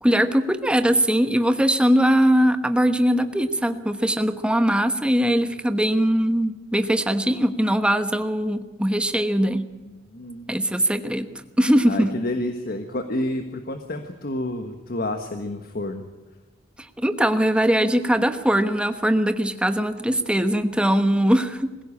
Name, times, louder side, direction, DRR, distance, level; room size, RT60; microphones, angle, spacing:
voice 1, 0.0-9.6 10.5-11.3 11.6-12.1 17.0-21.8, equal, 5° right, 9 dB, 1.2 m, -21 dB
voice 2, 9.9-10.6 11.8-16.1, left 1 dB, 55° left, 7 dB, 1.4 m, -29 dB
21.5 x 16.0 x 8.6 m, 1.2 s
head